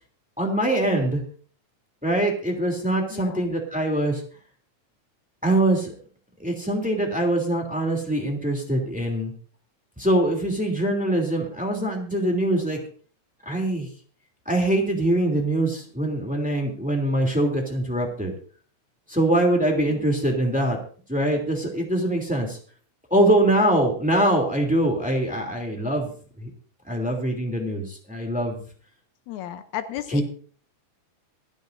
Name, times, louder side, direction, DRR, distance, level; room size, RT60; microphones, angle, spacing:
voice 1, 0.4-1.2 2.0-4.2 5.4-5.9 6.4-9.3 10.0-12.8 13.4-13.9 14.5-18.3 19.1-20.8 21.1-22.6 23.1-26.1 26.4-26.5 26.9-28.7 30.1-30.2, right 1 dB, 5° right, 1 dB, 2.5 m, -23 dB
voice 2, 3.1-3.5 19.9-20.1 29.3-30.2, left 11 dB, 80° left, 10 dB, 2.1 m, -34 dB
25.5 x 10.0 x 2.6 m, 0.43 s
omnidirectional pair, 3.4 m